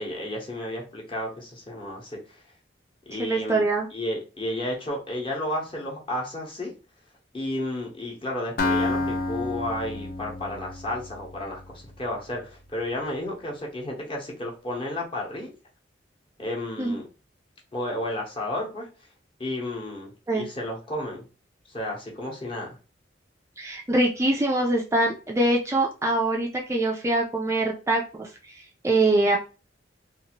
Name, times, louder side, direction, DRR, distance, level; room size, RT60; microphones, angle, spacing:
voice 1, 0.0-2.4 3.1-3.6 3.9-6.7 7.3-15.5 16.4-17.0 17.7-18.9 19.4-21.2 21.7-22.8, left 1 dB, 30° left, -2 dB, 1.0 m, -32 dB
voice 2, 3.2-3.9 16.8-17.0 20.3-20.5 23.6-29.4, right 2 dB, 15° right, -1 dB, 0.4 m, -24 dB
Acoustic guitar, 8.6-12.4, left 3 dB, 50° left, 0.4 m, -30 dB
2.7 x 2.5 x 2.8 m, 0.32 s
head